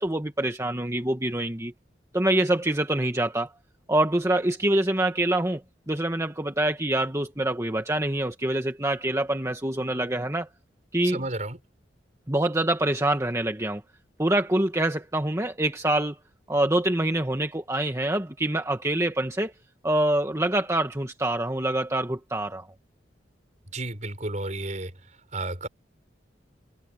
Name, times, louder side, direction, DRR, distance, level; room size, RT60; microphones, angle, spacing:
voice 1, 0.0-1.7 2.1-3.5 3.9-5.6 5.9-10.5 10.9-11.2 12.3-13.8 14.2-16.2 16.5-19.5 19.8-22.7, right 1 dB, 15° right, 1.4 m, -25 dB
voice 2, 11.0-11.6 23.7-24.9 25.3-25.7, right 2 dB, 45° right, 4.5 m, -32 dB
head